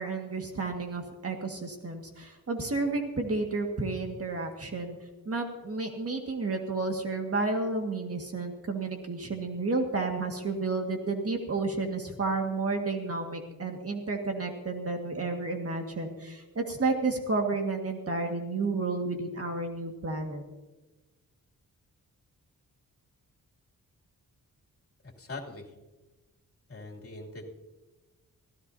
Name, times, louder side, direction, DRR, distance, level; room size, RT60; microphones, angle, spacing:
voice 1, 0.0-5.0 5.3-20.4, right 3 dB, 45° right, 3 dB, 1.8 m, -31 dB
voice 2, 25.0-25.7 26.7-27.4, left 2 dB, 40° left, -1 dB, 2.9 m, -42 dB
24.5 x 15.5 x 2.7 m, 1.1 s
wide cardioid pair, 105°, 34 cm